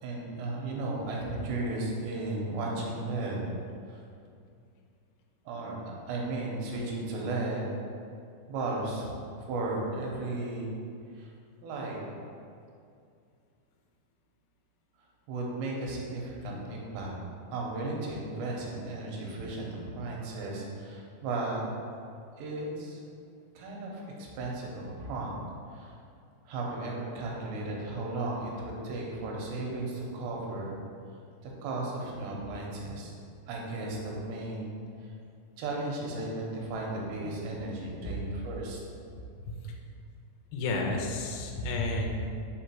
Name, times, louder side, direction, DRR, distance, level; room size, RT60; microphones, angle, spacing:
voice 1, 0.0-3.4 3.9-4.0 5.5-7.7 8.5-9.1 9.5-10.7 11.1-11.3 11.6-12.0 15.3-17.1 17.5-21.6 22.4-23.0 23.6-25.4 25.7-26.0 26.5-30.8 31.4-33.1 33.5-34.7 35.6-38.8, right 2 dB, 85° right, -2 dB, 3.1 m, -35 dB
voice 2, 40.5-42.3, left 2 dB, 80° left, 0 dB, 2.2 m, -31 dB
5.2 x 5.2 x 4.4 m, 2.4 s
omnidirectional pair, 5.0 m